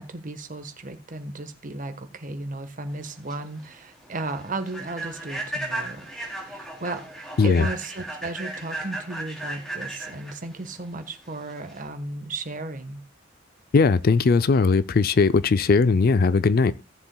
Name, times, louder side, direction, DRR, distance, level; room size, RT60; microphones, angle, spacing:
voice 1, 0.0-6.1 6.4-7.1 7.4-13.0, right 2 dB, 40° right, 1.3 m, -35 dB
Human voice / Train, 3.0-11.9, right 2 dB, 5° left, 3.0 m, -36 dB
voice 2, 13.7-16.7, left 4 dB, 50° left, 0.4 m, -19 dB
17.0 x 7.2 x 2.2 m
head